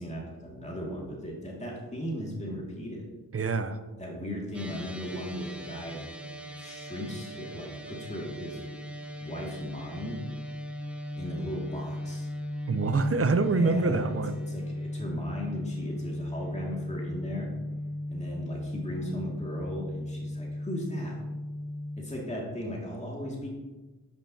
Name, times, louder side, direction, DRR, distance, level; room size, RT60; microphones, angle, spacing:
voice 1, 0.0-3.1 4.0-6.0 6.6-8.6 9.2-10.2 11.2-12.3 13.3-17.5 18.1-21.2 22.0-23.5, equal, 20° left, -3 dB, 2.2 m, -37 dB
voice 2, 3.3-3.8 12.7-14.4, right 3 dB, 35° right, 9 dB, 0.7 m, -25 dB
sound 1, 4.5-22.0, left 1 dB, 5° right, 1.1 m, -37 dB
10.0 x 5.4 x 2.8 m, 1.2 s
cardioid pair, 45°, 37 cm